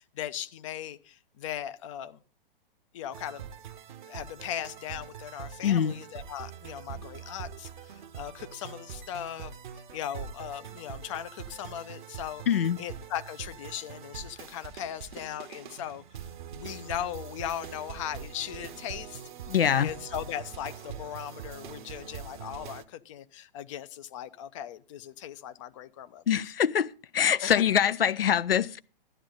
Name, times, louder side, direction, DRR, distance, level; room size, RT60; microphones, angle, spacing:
voice 1, 0.0-2.2 2.9-3.5 4.1-12.4 12.8-16.0 16.5-19.2 19.8-26.2 27.4-27.6, left 11 dB, 35° left, 0.6 m, -38 dB
sound 1, 3.1-22.8, right 8 dB, 55° right, 0.9 m, -43 dB
voice 2, 5.6-6.0 12.5-12.8 19.5-19.9 26.3-28.8, left 8 dB, 75° left, 0.6 m, -24 dB
12.5 x 10.5 x 3.8 m
figure-of-eight pair, 120°, 29 cm